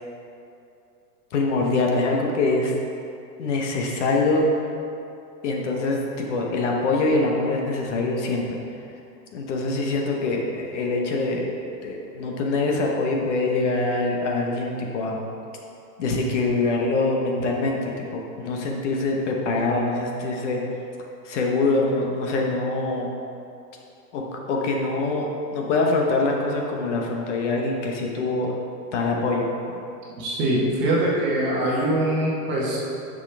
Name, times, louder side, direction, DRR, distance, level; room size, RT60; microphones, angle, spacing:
voice 1, 1.3-2.8 3.4-4.5 5.4-8.6 9.3-11.5 11.8-15.2 16.0-20.6 21.2-23.1 24.1-25.3 25.5-28.6 28.9-29.5, left 3 dB, 45° left, 0 dB, 1.0 m, -24 dB
voice 2, 30.2-32.8, right 1 dB, 20° right, -4 dB, 1.2 m, -23 dB
9.4 x 6.3 x 3.4 m, 2.7 s
supercardioid pair, 160°, 49 cm